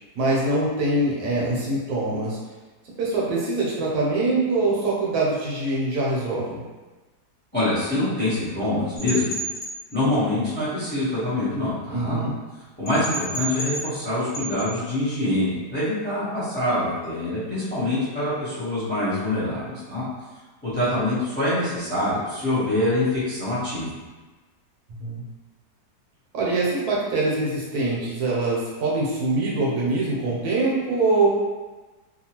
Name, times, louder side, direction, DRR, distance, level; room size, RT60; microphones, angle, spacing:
voice 1, 0.2-2.4 3.0-6.6 11.9-12.4 25.0-25.2 26.3-31.4, right 2 dB, 70° right, -5 dB, 1.1 m, -23 dB
voice 2, 7.5-9.4 9.9-12.2 12.8-20.0 20.6-24.0, left 1 dB, 10° left, -11 dB, 0.7 m, -25 dB
sound 1, 9.0-9.7 12.9-14.1 14.3-14.7, right 2 dB, 60° left, 1.1 m, -31 dB
2.9 x 2.2 x 2.9 m, 1.2 s
omnidirectional pair, 1.7 m